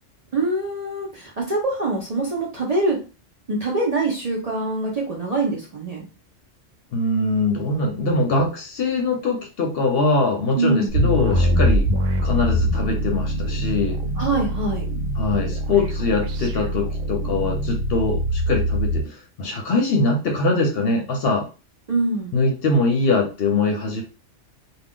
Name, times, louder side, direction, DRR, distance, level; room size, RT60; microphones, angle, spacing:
voice 1, 0.3-3.0 3.5-6.0 10.5-10.9 14.2-14.8 21.9-22.3, right 2 dB, 45° right, -2 dB, 0.5 m, -24 dB
voice 2, 6.9-11.9 12.2-14.0 15.2-21.5 22.3-24.0, left 3 dB, 60° left, 2 dB, 0.7 m, -22 dB
sound 1, 10.9-19.0, equal, 85° right, 0.9 m, -23 dB
2.4 x 2.2 x 3.5 m, 0.33 s
omnidirectional pair, 1.3 m